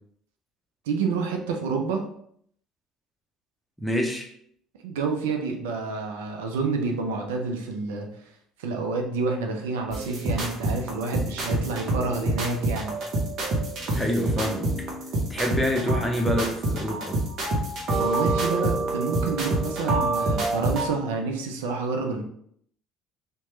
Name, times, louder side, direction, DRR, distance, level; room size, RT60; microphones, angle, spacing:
voice 1, 0.9-2.0 4.8-8.1 8.6-13.0 18.0-22.2, right 4 dB, 80° right, 3 dB, 0.4 m, -28 dB
voice 2, 3.8-4.3 13.9-14.7 15.3-17.2, equal, 5° left, 1 dB, 0.7 m, -26 dB
sound 1, 9.9-20.9, right 2 dB, 60° right, 0.8 m, -27 dB
2.9 x 2.2 x 3.0 m, 0.66 s
hypercardioid pair, 65°, 0 cm